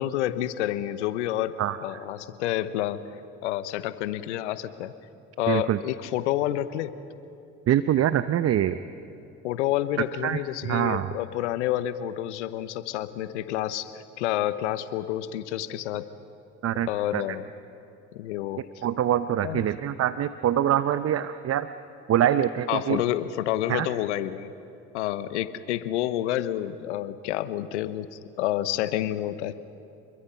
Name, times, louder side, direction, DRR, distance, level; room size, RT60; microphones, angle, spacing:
voice 1, 0.0-1.5 1.8-3.1 3.4-4.9 5.4-6.9 9.4-16.1 16.9-17.4 18.1-18.7 19.4-19.7 22.7-24.5 24.9-29.5, left 13 dB, 85° left, 13 dB, 0.9 m, -29 dB
voice 2, 5.5-5.8 7.7-8.8 10.2-10.4 10.7-11.1 16.6-17.2 18.8-21.7 22.1-23.0 23.7-23.9, right 11 dB, 45° right, 12 dB, 0.8 m, -24 dB
28.5 x 22.0 x 5.7 m, 2.7 s
hypercardioid pair, 65°, 34 cm